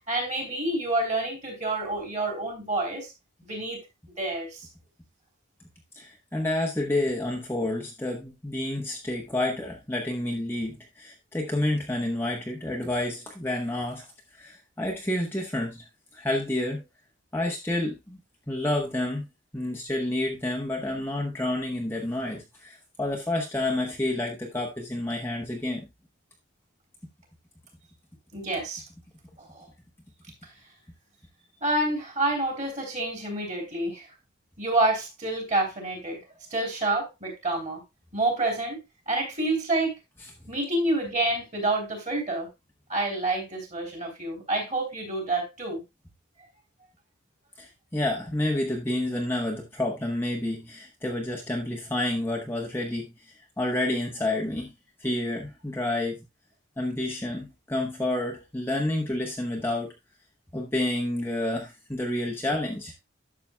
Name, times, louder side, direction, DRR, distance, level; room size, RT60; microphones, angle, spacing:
voice 1, 0.1-3.1 3.4-3.8 4.2-4.7 28.3-28.8 29.4-29.7 30.4-30.5 31.6-34.1 34.6-36.2 36.5-37.8 38.1-38.8 39.1-40.0 40.5-42.5 42.9-45.8, right 2 dB, 30° right, 3.2 m, -28 dB
voice 2, 5.9-14.1 14.3-16.8 17.3-18.2 18.5-19.3 19.5-25.9 47.6-54.7 55.0-56.2 56.8-59.9 60.5-62.9, left 1 dB, 10° left, 0.9 m, -29 dB
11.5 x 6.8 x 2.2 m
head